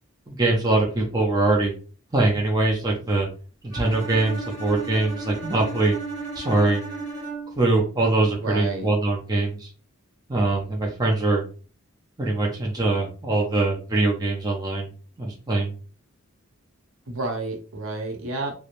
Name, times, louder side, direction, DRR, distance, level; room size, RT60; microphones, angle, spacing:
voice 1, 0.3-1.7 2.1-3.3 3.6-5.9 6.3-6.8 7.6-9.7 10.3-11.4 12.2-14.9 15.2-15.7, right 2 dB, 20° right, -1 dB, 0.4 m, -23 dB
Bowed string instrument, 3.7-7.7, right 3 dB, 35° left, 0.8 m, -34 dB
voice 2, 8.3-8.9 17.1-18.5, right 2 dB, 70° right, 3 dB, 0.7 m, -30 dB
3.0 x 2.0 x 2.5 m, 0.38 s
head